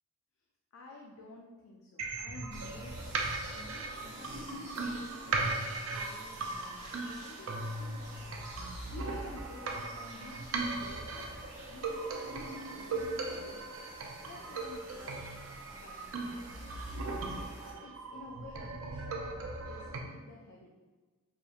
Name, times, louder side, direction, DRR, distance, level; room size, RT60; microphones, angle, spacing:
voice 1, 0.7-3.1 3.4-8.5 8.9-13.7 14.2-15.2 15.7-17.4 17.8-20.7, left 2 dB, 80° left, -1 dB, 0.4 m, -52 dB
sound 1, 2.0-20.0, right 3 dB, 70° right, 0.5 m, -38 dB
sound 2, 2.5-17.7, right 1 dB, 55° right, 1.3 m, -50 dB
4.9 x 2.8 x 2.4 m, 1.3 s
head